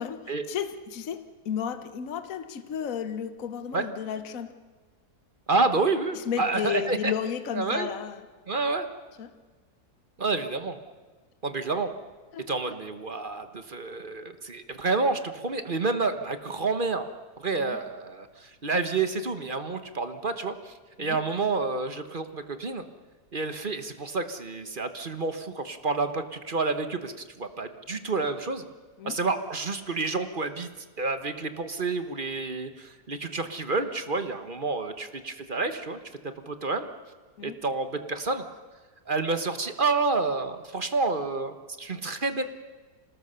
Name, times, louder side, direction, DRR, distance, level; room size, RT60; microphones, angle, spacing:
voice 1, 0.0-4.6 6.1-8.3 9.2-9.3 12.3-12.7 17.6-17.8 21.0-21.2 29.0-29.2 37.4-37.6, left 8 dB, 60° left, 11 dB, 1.4 m, -33 dB
voice 2, 5.5-7.1 7.5-7.9 8.5-8.9 10.2-10.8 11.4-11.9 12.5-17.1 17.4-22.8 23.3-28.7 29.0-36.0 36.5-36.9 37.4-38.4 39.1-42.4, right 3 dB, 35° right, 9 dB, 1.2 m, -29 dB
26.5 x 19.0 x 6.9 m, 1.3 s
omnidirectional pair, 1.7 m